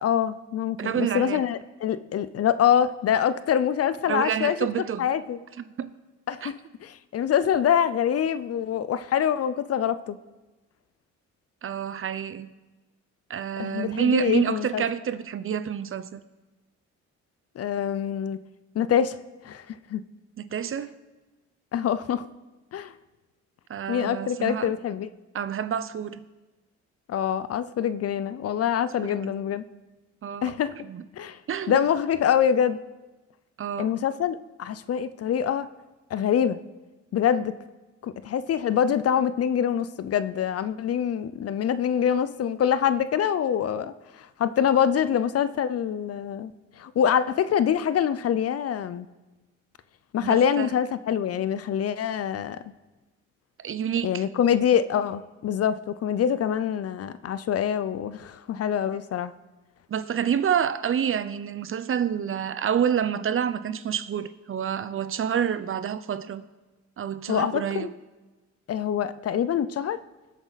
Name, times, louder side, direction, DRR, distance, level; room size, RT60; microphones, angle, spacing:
voice 1, 0.0-4.6 5.0-5.4 6.3-10.2 13.6-14.8 17.6-18.4 18.7-19.2 19.4-20.0 21.7-22.3 22.7-22.9 23.9-25.1 27.1-29.6 30.4-30.8 31.2-31.4 31.7-32.8 33.8-35.7 36.1-36.6 37.1-37.5 38.0-49.1 50.1-52.6 54.0-59.3 67.3-67.9 68.7-70.0, left 9 dB, 55° left, 0.6 m, -25 dB
voice 2, 0.8-1.4 4.1-5.1 5.8-5.9 6.4-6.5 11.6-12.5 13.3-16.2 20.4-20.9 23.7-24.7 25.3-26.2 29.0-29.4 30.2-30.5 30.9-31.0 31.5-31.8 33.6-33.9 50.2-50.7 53.6-54.2 59.9-66.4 67.0-67.9, right 8 dB, 45° right, 0.6 m, -28 dB
19.5 x 8.1 x 4.1 m
cardioid pair, 90°, 30 cm